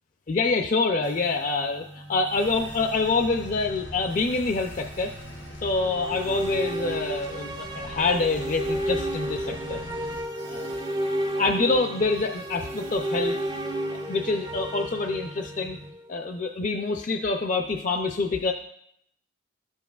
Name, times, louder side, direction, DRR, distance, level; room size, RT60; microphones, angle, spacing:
voice 1, 0.3-5.1 5.6-9.8 10.4-10.8 11.4-13.4 14.1-15.8 16.1-18.5, left 3 dB, 40° left, 4 dB, 0.4 m, -26 dB
sound 1, 1.0-15.9, right 1 dB, 85° right, 1.9 m, -45 dB
sound 2, 2.4-10.2, left 1 dB, 75° left, 0.7 m, -43 dB
sound 3, 5.8-16.0, equal, 20° right, 0.4 m, -32 dB
12.5 x 7.0 x 2.3 m, 0.72 s
head